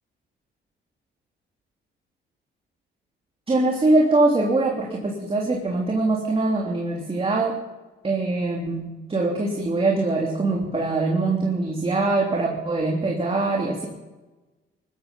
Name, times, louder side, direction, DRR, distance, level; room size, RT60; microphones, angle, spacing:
voice 1, 3.5-7.6 8.0-13.9, right 2 dB, 30° right, -1 dB, 3.2 m, -23 dB
19.5 x 13.5 x 5.5 m, 1.1 s
cardioid pair, 90°, 20 cm